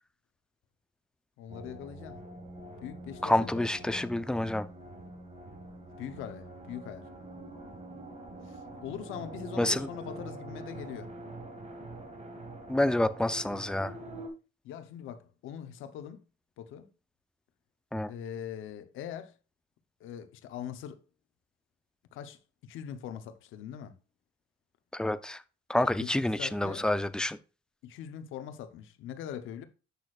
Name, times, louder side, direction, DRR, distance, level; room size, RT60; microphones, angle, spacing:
voice 1, 1.4-2.2 2.8-4.3 6.0-7.1 8.4-11.1 14.6-16.2 16.6-16.9 18.1-19.4 20.0-21.0 22.1-23.9 26.0-26.9 27.8-29.7, left 9 dB, 90° left, 0.9 m, -42 dB
sound 1, 1.5-14.3, right 1 dB, 35° right, 1.9 m, -45 dB
voice 2, 3.2-4.7 9.6-9.9 12.7-13.9 17.9-18.1 24.9-25.4 25.7-27.4, left 1 dB, 5° left, 0.5 m, -28 dB
8.2 x 6.3 x 2.4 m
cardioid pair, 90°, 20 cm